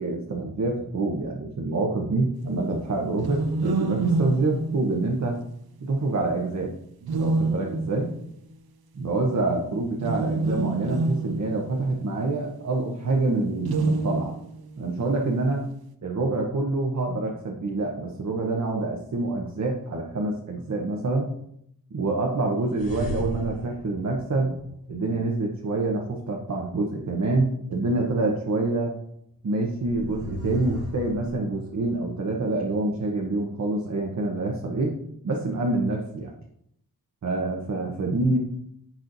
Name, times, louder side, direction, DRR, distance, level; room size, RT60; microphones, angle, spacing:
voice 1, 0.0-5.4 5.8-6.7 7.1-8.1 9.0-14.3 14.8-15.7 16.0-21.3 21.9-24.6 24.9-29.0 29.4-34.9 35.2-36.3 37.2-38.4, right 2 dB, 50° right, 0 dB, 0.9 m, -26 dB
sound 1, 3.1-5.4 7.0-8.2 9.9-12.2 13.6-14.7, right 2 dB, 85° right, 0.7 m, -27 dB
sound 2, 22.7-25.1 29.7-32.0, equal, 65° left, 2.6 m, -36 dB
10.5 x 4.3 x 2.6 m, 0.73 s
wide cardioid pair, 125°, 36 cm